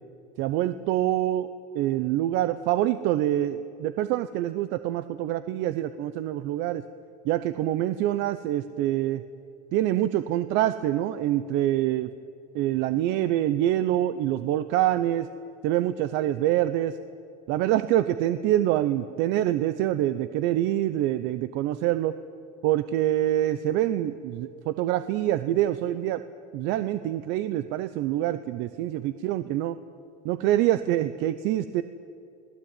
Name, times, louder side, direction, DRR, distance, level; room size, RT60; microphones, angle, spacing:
voice 1, 0.4-6.8 7.2-9.2 9.7-12.1 12.5-15.3 15.6-17.0 17.5-22.2 22.6-26.2 26.5-29.8 30.2-31.8, right 13 dB, 65° right, 13 dB, 0.9 m, -25 dB
28.0 x 19.5 x 9.1 m, 2.5 s
supercardioid pair, 125°, 20 cm